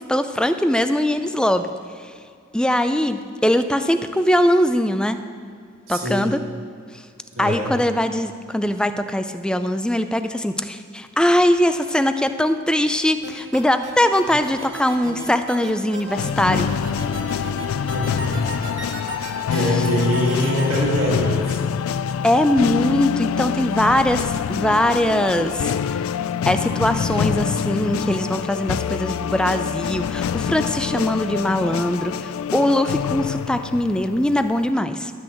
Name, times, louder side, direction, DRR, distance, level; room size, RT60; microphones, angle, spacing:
voice 1, 0.0-1.7 2.0-2.1 2.5-5.2 5.9-6.4 7.4-16.7 19.5-19.9 22.2-26.0 26.5-35.1, left 1 dB, 5° left, 9 dB, 0.4 m, -21 dB
voice 2, 5.9-6.2 7.3-7.7 17.9-18.5 19.5-21.6, equal, 90° right, -4 dB, 1.9 m, -24 dB
sound 1, 13.2-20.8, right 2 dB, 60° right, 2.1 m, -34 dB
sound 2, 16.1-34.7, left 7 dB, 85° left, 0.3 m, -25 dB
12.0 x 6.2 x 7.7 m, 2.3 s
head